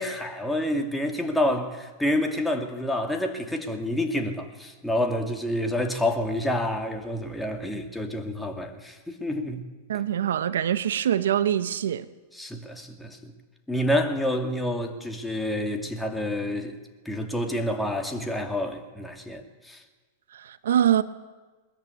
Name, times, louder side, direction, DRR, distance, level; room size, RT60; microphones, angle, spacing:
voice 1, 0.0-9.6 9.9-10.0 12.3-13.3 13.7-16.8 17.0-19.8, left 1 dB, 5° left, 2.4 m, -28 dB
voice 2, 9.9-12.0 20.3-21.0, right 10 dB, 80° right, 0.8 m, -24 dB
20.5 x 13.5 x 9.6 m
hypercardioid pair, 115°, 0 cm